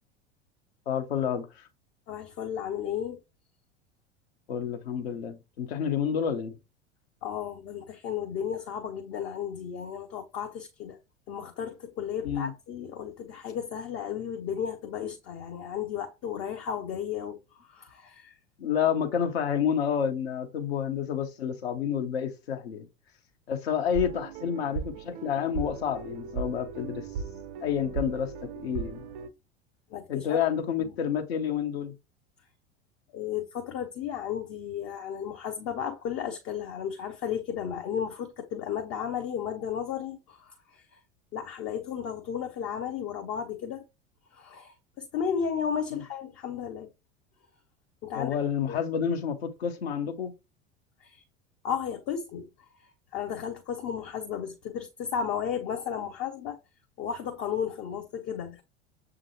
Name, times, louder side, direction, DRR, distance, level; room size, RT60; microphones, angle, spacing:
voice 1, 0.9-1.7 4.5-6.6 12.2-12.5 18.6-22.9 23.5-27.1 27.6-29.0 30.1-31.9 45.9-46.0 48.1-50.3, left 8 dB, 65° left, 0.9 m, -29 dB
voice 2, 2.1-3.2 7.2-11.0 11.3-18.4 29.9-30.4 30.8-30.9 33.1-41.0 41.3-43.8 44.3-46.9 48.0-48.3 48.7-48.8 51.0-51.2 51.6-52.5 53.1-56.6 57.0-58.6, left 8 dB, 40° left, 0.7 m, -34 dB
sound 1, 23.9-29.3, right 6 dB, 45° right, 0.5 m, -37 dB
6.7 x 2.5 x 2.8 m
figure-of-eight pair, 75°, 33 cm